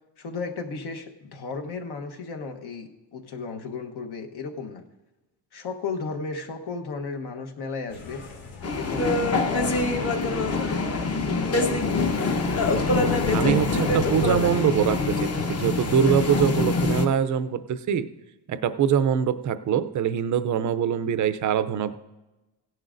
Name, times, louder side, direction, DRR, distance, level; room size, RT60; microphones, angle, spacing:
voice 1, 0.2-4.8 5.5-8.2 8.8-10.9 11.1-11.7, left 4 dB, 60° left, 4 dB, 1.2 m, -34 dB
sound 1, 7.9-14.1, left 3 dB, 85° left, 2.7 m, -41 dB
sound 2, 8.6-17.1, left 3 dB, 35° left, 1.0 m, -24 dB
voice 2, 13.3-18.1 18.5-22.0, right 8 dB, 45° right, 13 dB, 0.5 m, -23 dB
16.5 x 10.5 x 2.6 m, 1.1 s
cardioid pair, 155°, 43 cm